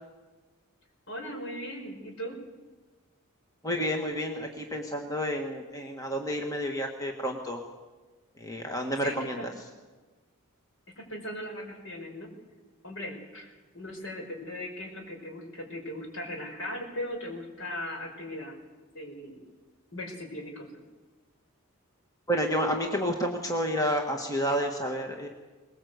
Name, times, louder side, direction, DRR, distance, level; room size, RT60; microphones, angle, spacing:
voice 1, 1.1-2.4 9.0-9.5 11.0-12.3 12.8-13.5 13.7-18.6 18.9-19.4 19.9-20.7, left 1 dB, 60° left, 2 dB, 5.3 m, -38 dB
voice 2, 3.6-7.6 8.4-9.7 22.3-25.3, equal, 15° left, 3 dB, 1.6 m, -30 dB
22.5 x 20.5 x 8.1 m, 1.3 s
head